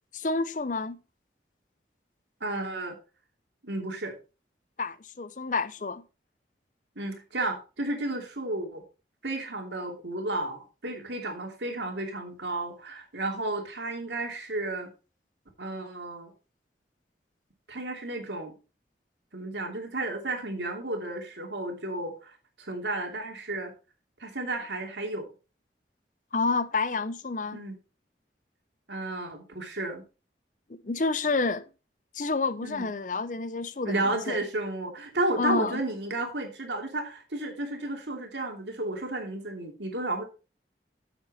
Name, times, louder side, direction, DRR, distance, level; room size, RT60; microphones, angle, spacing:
voice 1, 0.1-1.0 4.8-6.0 26.3-27.6 30.7-31.6 32.1-34.4 35.4-35.8, left 3 dB, 45° left, 0.7 m, -29 dB
voice 2, 2.4-3.0 3.6-4.1 7.0-8.8 9.2-14.9 15.6-16.3 17.7-18.5 19.3-23.7 24.2-25.3 27.5-27.8 28.9-30.0 32.6-32.9 33.8-40.2, right 2 dB, 80° right, 2.7 m, -32 dB
9.1 x 7.5 x 4.2 m
head